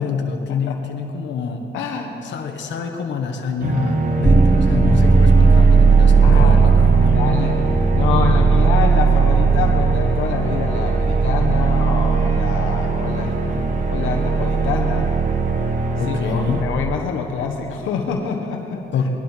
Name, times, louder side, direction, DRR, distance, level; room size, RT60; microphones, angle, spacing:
voice 1, 0.0-1.7 2.2-7.1 16.0-16.7 18.9-19.1, left 5 dB, 65° left, 3 dB, 1.4 m, -26 dB
voice 2, 1.7-2.1 6.2-6.7 7.1-7.6 7.9-13.6 13.9-15.1 16.1-19.0, left 6 dB, 90° left, 2 dB, 1.3 m, -26 dB
sound 1, 3.6-16.6, right 2 dB, 40° right, 1.5 m, -24 dB
sound 2, 4.2-17.0, right 5 dB, 10° right, 0.5 m, -17 dB
20.0 x 11.5 x 4.5 m, 2.9 s
cardioid pair, 90°, 20 cm